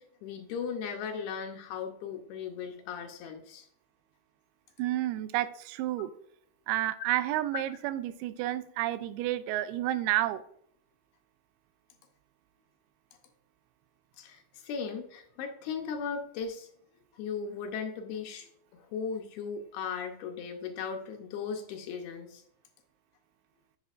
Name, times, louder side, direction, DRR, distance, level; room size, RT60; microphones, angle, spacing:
voice 1, 0.2-3.7 7.5-7.6 14.2-16.7 17.2-22.4, left 6 dB, 75° left, 4 dB, 2.6 m, -37 dB
voice 2, 4.8-6.1 6.7-10.4, right 14 dB, 80° right, 13 dB, 2.4 m, -30 dB
8.1 x 8.0 x 2.5 m, 0.67 s
omnidirectional pair, 4.8 m